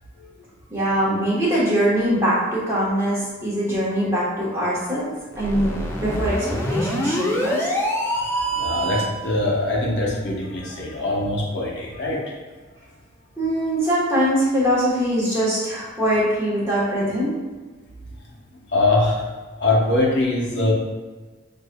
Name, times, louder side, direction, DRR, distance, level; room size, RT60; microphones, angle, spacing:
voice 1, 0.7-5.1 5.4-6.4 6.7-7.7 13.4-17.3, equal, 15° right, -8 dB, 1.2 m, -22 dB
sound 1, 5.3-9.2, equal, 10° left, 0.4 m, -25 dB
voice 2, 8.2-12.2 18.5-19.3 19.6-20.7, left 2 dB, 55° left, -4 dB, 0.9 m, -23 dB
6.5 x 2.6 x 2.2 m, 1.3 s
head